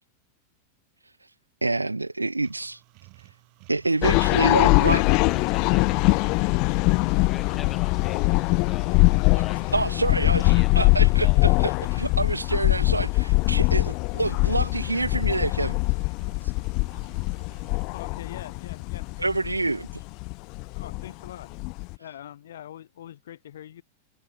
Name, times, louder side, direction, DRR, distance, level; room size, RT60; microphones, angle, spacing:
voice 1, 1.6-2.8 3.7-5.0 9.3-9.4 9.7-15.8 19.2-19.9, right 2 dB, 85° right, 1.2 m, -27 dB
sound 1, 2.4-17.9, right 36 dB, 45° right, 7.1 m, -53 dB
sound 2, 4.0-21.9, left 29 dB, 40° left, 0.5 m, -22 dB
voice 2, 4.3-4.7 5.0-6.4 7.2-8.9 9.2-9.6 10.4-11.4, left 8 dB, 20° left, 2.1 m, -41 dB
voice 3, 17.9-19.0 20.7-21.5 22.0-23.8, left 11 dB, 60° left, 1.8 m, -43 dB
figure-of-eight pair, 90°, 0 cm